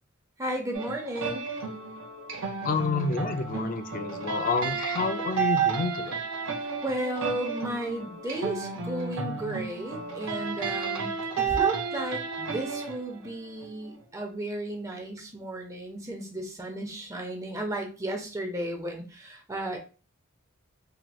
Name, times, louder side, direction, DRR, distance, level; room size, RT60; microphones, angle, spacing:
voice 1, 0.4-1.5 6.8-19.8, right 1 dB, 15° right, 2 dB, 0.6 m, -34 dB
sound 1, 0.7-14.0, right 6 dB, 65° right, 0.7 m, -32 dB
voice 2, 2.6-6.1, left 4 dB, 40° left, 8 dB, 0.3 m, -29 dB
3.0 x 2.8 x 2.3 m, 0.35 s
head